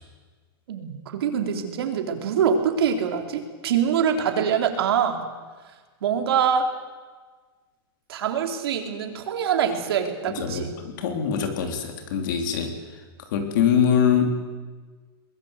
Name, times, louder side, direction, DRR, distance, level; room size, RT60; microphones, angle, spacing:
voice 1, 0.7-5.2 6.0-6.7 8.1-10.7, right 7 dB, 65° right, 4 dB, 3.8 m, -24 dB
voice 2, 10.3-14.3, left 7 dB, 50° left, 5 dB, 3.5 m, -24 dB
23.0 x 21.0 x 8.3 m, 1.4 s
supercardioid pair, 175°, 14 cm